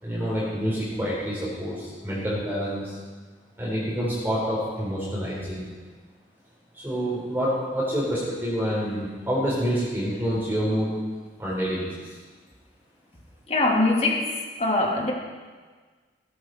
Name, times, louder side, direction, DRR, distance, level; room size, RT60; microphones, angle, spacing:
voice 1, 0.0-3.0 3.6-5.7 6.7-11.0 11.4-12.2, equal, 10° right, -7 dB, 3.7 m, -27 dB
voice 2, 13.5-15.1, left 2 dB, 35° left, -1 dB, 2.5 m, -23 dB
17.5 x 13.0 x 4.5 m, 1.4 s
head